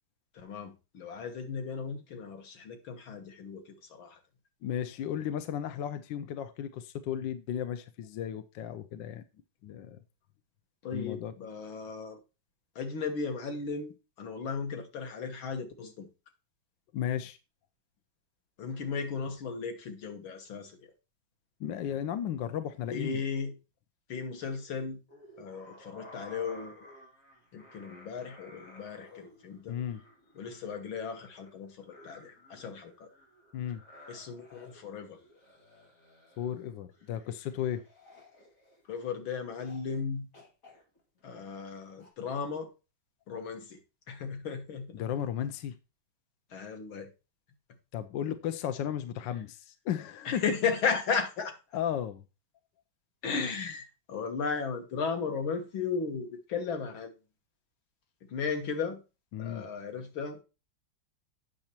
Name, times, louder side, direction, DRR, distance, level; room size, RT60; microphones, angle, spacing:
voice 1, 0.3-4.2 10.8-12.2 12.8-16.1 18.6-20.8 22.9-23.5 24.1-25.0 25.4-26.7 27.5-29.8 30.4-33.1 34.1-35.2 38.9-40.3 41.2-42.7 43.3-43.8 44.1-44.9 46.5-47.1 50.3-51.6 53.2-57.1 58.3-59.0 59.4-60.4, left 5 dB, 90° left, 2.2 m, -35 dB
voice 2, 4.6-9.2 9.6-10.0 10.9-11.3 16.9-17.4 21.6-23.2 29.7-30.0 33.5-33.8 36.4-37.8 44.9-45.8 47.9-50.4 51.7-52.2 59.3-59.7, left 9 dB, 75° left, 1.4 m, -34 dB
sound 1, 25.1-39.1 39.6-40.0 40.3-42.1, left 1 dB, 40° left, 2.7 m, -55 dB
8.6 x 6.4 x 4.4 m
omnidirectional pair, 2.2 m